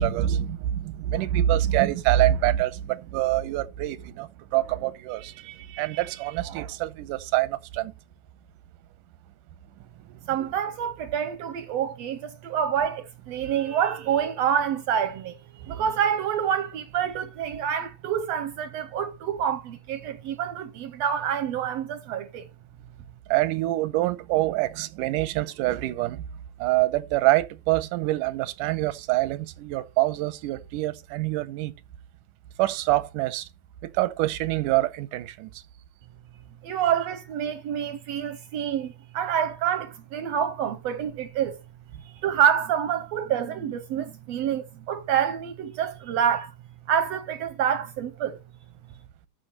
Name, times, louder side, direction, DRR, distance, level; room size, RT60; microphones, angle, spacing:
voice 1, 0.0-7.9 23.3-26.2 26.6-31.7 32.6-33.5 33.9-35.6, right 14 dB, 90° right, 2.3 m, -25 dB
voice 2, 10.3-15.4 15.7-22.5 36.6-41.6 42.0-46.5 46.9-48.4, right 9 dB, 70° right, 1.6 m, -27 dB
14.5 x 6.5 x 3.0 m
omnidirectional pair, 3.6 m